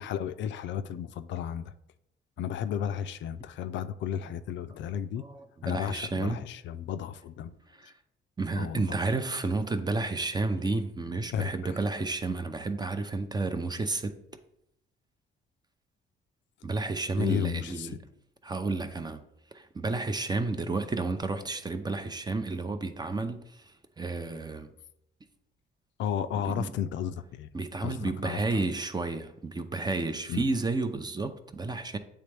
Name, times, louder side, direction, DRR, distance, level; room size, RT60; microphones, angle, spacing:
voice 1, 0.0-1.7 2.4-5.3 5.6-7.6 8.6-8.9 11.3-11.5 17.2-17.9 26.0-27.5 27.8-28.7 30.3-30.4, left 9 dB, 70° left, 10 dB, 0.4 m, -33 dB
voice 2, 5.2-6.4 7.7-7.9 8.4-14.2 16.6-18.0 18.4-19.2 19.5-24.7 26.5-26.7 27.5-32.0, right 3 dB, 20° right, 9 dB, 0.5 m, -31 dB
8.3 x 3.4 x 3.3 m, 0.78 s
cardioid pair, 90°, 20 cm